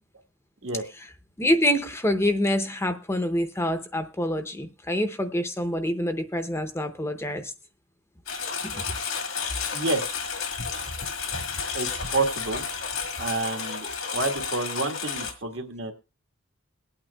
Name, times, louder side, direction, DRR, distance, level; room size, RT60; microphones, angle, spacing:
voice 1, 1.4-7.5 8.6-8.8, left 1 dB, 10° left, 8 dB, 0.6 m, -26 dB
Engine, 8.3-15.3, left 6 dB, 80° left, 1.8 m, -32 dB
voice 2, 9.7-10.2 11.7-12.6 13.2-15.9, right 3 dB, 65° right, 4 dB, 1.5 m, -29 dB
22.5 x 8.9 x 2.3 m, 0.30 s
head